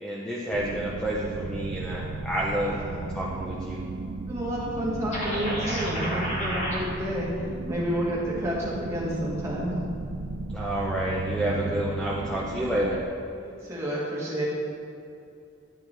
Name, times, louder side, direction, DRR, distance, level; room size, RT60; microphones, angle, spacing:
voice 1, 0.0-2.7 3.1-3.8 10.5-13.0, right 1 dB, 5° left, -6 dB, 0.6 m, -29 dB
sound 1, 0.5-13.1, right 3 dB, 80° right, 0.4 m, -35 dB
voice 2, 2.6-3.1 4.3-7.3 7.7-9.8 13.4-14.4, equal, 15° right, -7 dB, 1.4 m, -30 dB
sound 2, 5.1-6.8, equal, 35° left, 1.3 m, -31 dB
10.5 x 4.6 x 3.3 m, 2.6 s
head